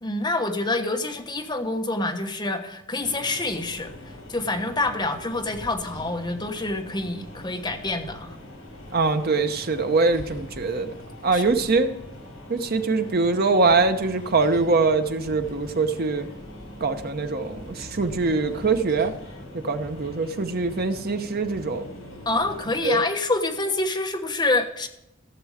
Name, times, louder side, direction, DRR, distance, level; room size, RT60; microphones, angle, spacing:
voice 1, 0.0-3.9 4.3-8.4 11.3-11.5 22.3-24.9, left 2 dB, 20° left, 4 dB, 1.2 m, -27 dB
sound 1, 3.0-22.9, left 1 dB, 70° left, 5.2 m, -42 dB
voice 2, 8.9-10.9 11.2-11.9 12.5-16.3 16.8-19.1 19.6-21.8 22.8-23.0, right 3 dB, 50° right, 7 dB, 0.9 m, -23 dB
16.0 x 6.9 x 4.9 m, 0.82 s
head